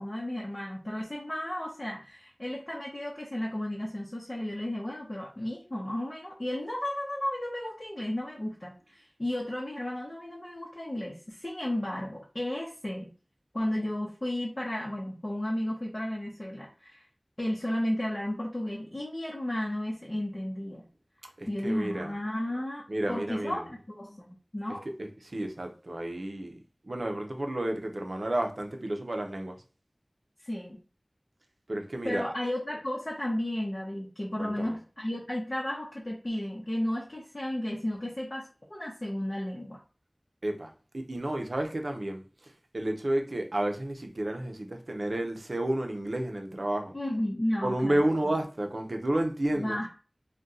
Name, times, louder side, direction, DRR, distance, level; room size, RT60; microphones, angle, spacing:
voice 1, 0.0-13.1 13.5-17.0 17.4-20.9 21.5-24.9 30.4-30.8 32.0-39.8 46.9-48.0 49.5-49.9, left 1 dB, 50° left, -3 dB, 0.7 m, -33 dB
voice 2, 21.4-22.1 22.9-23.7 24.7-26.6 26.8-29.6 31.7-32.3 34.4-34.8 40.4-42.2 42.7-46.9 47.6-49.8, right 1 dB, 80° right, 4 dB, 0.5 m, -31 dB
2.6 x 2.2 x 3.7 m, 0.35 s
wide cardioid pair, 45°, 0 cm